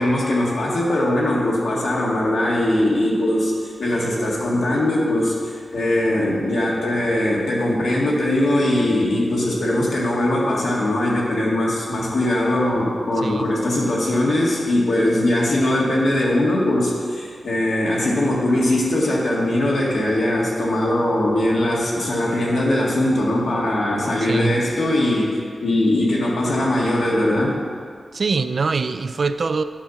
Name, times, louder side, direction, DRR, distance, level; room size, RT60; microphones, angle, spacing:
voice 1, 0.0-27.6, left 1 dB, 80° left, -4 dB, 1.8 m, -20 dB
voice 2, 24.2-24.6 28.1-29.6, right 4 dB, 55° right, 10 dB, 0.3 m, -23 dB
9.8 x 4.2 x 5.8 m, 2.1 s
wide cardioid pair, 125°, 0 cm